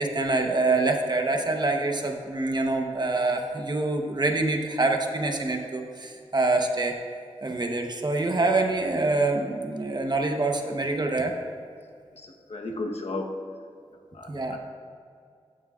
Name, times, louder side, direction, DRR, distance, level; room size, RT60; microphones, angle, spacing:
voice 1, 0.0-6.9 7.4-11.3 14.3-14.6, right 2 dB, 40° right, 3 dB, 1.0 m, -25 dB
voice 2, 12.1-13.3 14.1-14.6, left 2 dB, 75° left, 1 dB, 1.1 m, -34 dB
15.0 x 9.7 x 2.5 m, 2.3 s
wide cardioid pair, 85°, 11 cm